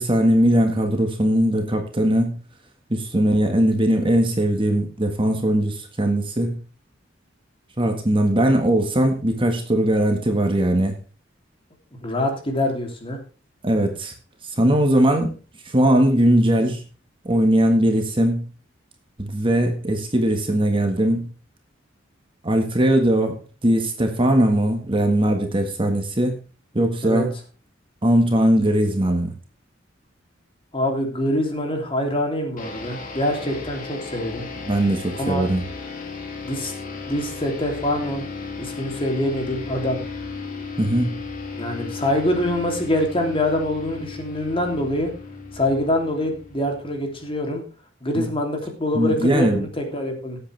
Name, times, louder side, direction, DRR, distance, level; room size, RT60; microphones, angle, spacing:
voice 1, 0.0-2.4 2.9-6.6 7.8-10.9 13.6-14.1 14.6-15.3 15.7-16.8 17.3-18.4 19.2-21.3 22.4-23.4 23.6-26.4 26.7-27.3 28.0-29.3 34.7-35.7 40.8-41.2 48.2-48.3 48.9-49.7, right 1 dB, 30° right, 4 dB, 1.7 m, -20 dB
voice 2, 11.9-13.2 27.0-27.3 30.7-34.5 35.2-35.5 36.4-36.7 37.1-38.3 38.6-40.0 41.5-45.1 45.5-47.6 48.0-50.4, left 1 dB, 30° left, 3 dB, 3.1 m, -25 dB
sound 1, 32.6-47.4, left 4 dB, 45° left, 2.7 m, -35 dB
17.0 x 8.3 x 3.4 m, 0.36 s
head